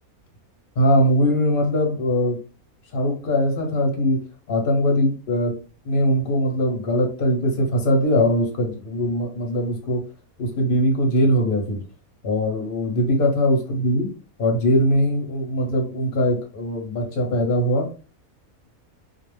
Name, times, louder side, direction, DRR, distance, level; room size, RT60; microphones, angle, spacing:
voice 1, 0.8-2.4 2.9-4.2 4.5-5.5 5.8-10.0 10.4-11.8 12.2-14.1 14.4-17.9, equal, 50° left, 2 dB, 0.7 m, -21 dB
2.3 x 2.0 x 3.2 m, 0.36 s
omnidirectional pair, 1.5 m